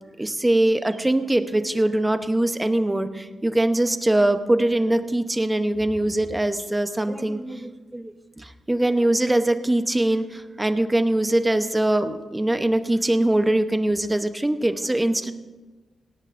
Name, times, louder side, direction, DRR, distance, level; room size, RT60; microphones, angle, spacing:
voice 1, 0.2-15.3, right 1 dB, 10° right, 9 dB, 0.8 m, -22 dB
17.5 x 17.5 x 2.6 m, 1.3 s
cardioid pair, 115°, 0 cm